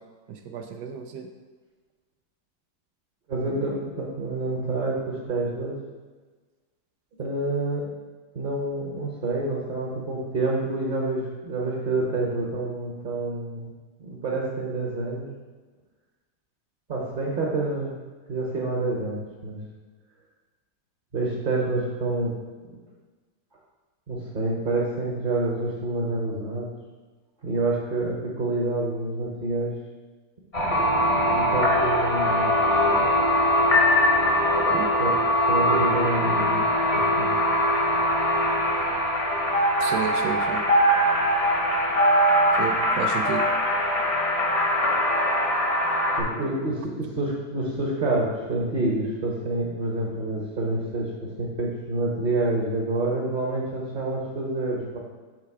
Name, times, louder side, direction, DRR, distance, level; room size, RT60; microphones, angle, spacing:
voice 1, 0.3-1.3 34.7-34.9 39.8-40.6 42.5-43.4, right 6 dB, 75° right, 5 dB, 1.1 m, -31 dB
voice 2, 3.3-5.8 7.2-7.9 8.3-13.7 14.0-15.3 16.9-17.9 18.3-19.6 21.1-22.3 22.6-22.8 24.1-26.7 27.4-29.8 30.6-32.5 35.0-35.2 35.5-36.6 36.9-37.3 46.2-55.0, right 2 dB, 45° right, -3 dB, 0.6 m, -28 dB
sound 1, 30.5-46.2, equal, 40° left, 0.5 m, -22 dB
6.7 x 3.3 x 4.6 m, 1.3 s
omnidirectional pair, 2.0 m